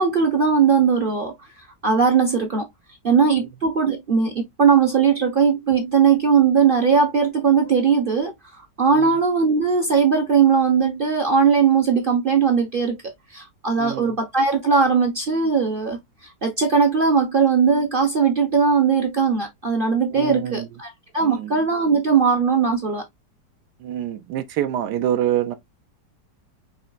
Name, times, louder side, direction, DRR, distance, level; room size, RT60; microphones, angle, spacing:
voice 1, 0.0-1.3 1.8-2.7 3.0-23.0, right 6 dB, 50° right, 0.6 m, -19 dB
voice 2, 13.8-14.1 20.1-20.7 21.2-21.5 23.8-25.5, right 11 dB, 80° right, 1.2 m, -26 dB
5.5 x 2.9 x 2.4 m
omnidirectional pair, 1.8 m